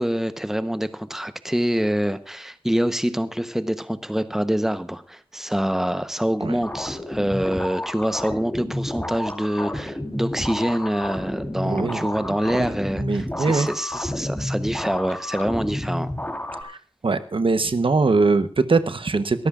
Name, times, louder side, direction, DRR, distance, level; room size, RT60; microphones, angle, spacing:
voice 1, 0.0-16.1, equal, 5° right, 11 dB, 1.0 m, -25 dB
sound 1, 6.6-16.6, left 1 dB, 15° left, 3.5 m, -30 dB
voice 2, 11.6-12.0 12.3-12.7 13.0-13.7 16.6-16.8 17.0-19.5, right 3 dB, 70° right, 11 dB, 1.0 m, -22 dB
23.0 x 13.5 x 2.5 m, 0.35 s
wide cardioid pair, 50°, 9 cm